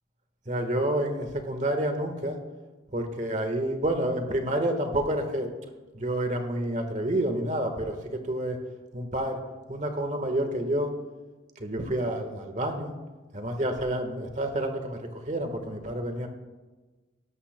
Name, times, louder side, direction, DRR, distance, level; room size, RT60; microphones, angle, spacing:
voice 1, 0.5-2.4 2.9-5.5 5.9-8.0 8.3-8.6 8.9-9.4 9.7-10.9 11.6-12.9 13.3-16.3, right 1 dB, 40° right, 6 dB, 1.4 m, -29 dB
18.0 x 12.5 x 2.2 m, 1.3 s
head